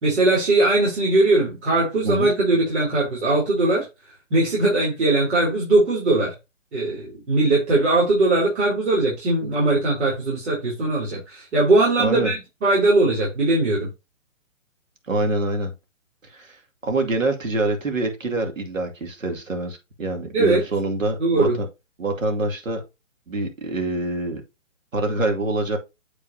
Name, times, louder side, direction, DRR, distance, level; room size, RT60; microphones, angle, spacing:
voice 1, 0.0-3.9 4.3-6.3 6.7-13.9 20.3-20.6 21.2-21.6, right 2 dB, 60° right, 4.1 m, -20 dB
voice 2, 12.0-12.3 15.1-15.7 16.3-21.7 22.0-22.8 23.3-24.4 24.9-25.8, right 2 dB, 85° right, 2.6 m, -25 dB
8.0 x 5.3 x 2.8 m
hypercardioid pair, 135°, 38 cm